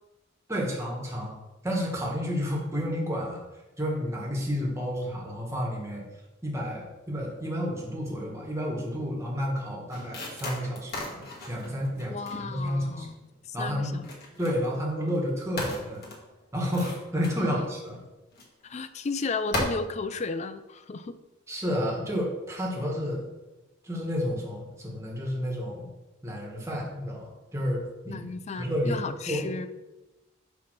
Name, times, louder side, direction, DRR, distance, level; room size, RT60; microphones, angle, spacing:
voice 1, 0.5-1.3 1.6-3.4 3.8-6.0 6.4-12.2 12.4-13.1 13.5-14.0 14.4-16.0 16.5-18.0 21.5-23.3 23.8-25.9 26.2-28.2 28.6-29.5, equal, 15° right, -2 dB, 1.6 m, -31 dB
sound 1, 9.9-13.1 13.7-14.6 15.1-15.3 15.6-17.9 18.3-18.4 18.8-19.1 19.5-19.6, left 1 dB, 50° left, 1.8 m, -37 dB
voice 2, 12.1-14.1 17.3-17.7 18.6-21.2 28.1-29.7, left 4 dB, 35° left, 12 dB, 0.4 m, -34 dB
5.4 x 5.1 x 6.0 m, 1.0 s
head